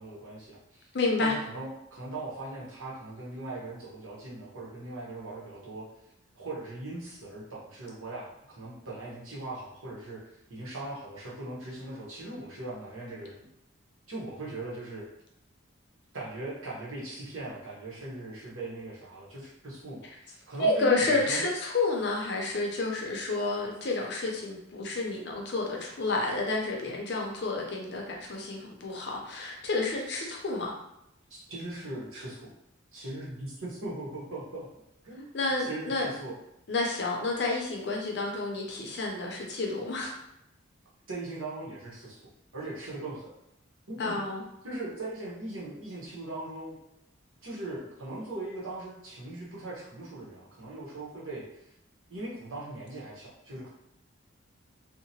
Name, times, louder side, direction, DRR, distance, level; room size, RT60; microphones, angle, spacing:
voice 1, 0.0-0.9 1.2-5.9 6.3-13.5 14.1-15.1 16.1-21.4 31.3-32.5 32.9-34.7 35.0-35.2 35.6-36.4 41.1-42.2 42.5-43.3 43.9-44.2 44.6-46.8 47.4-51.7 52.1-53.7, right 2 dB, 85° right, -5 dB, 0.9 m, -39 dB
voice 2, 0.9-1.3 20.6-30.7 35.3-36.1 36.7-40.1 44.0-44.4, left 3 dB, 55° left, -1 dB, 0.5 m, -30 dB
2.8 x 2.0 x 2.8 m, 0.82 s
head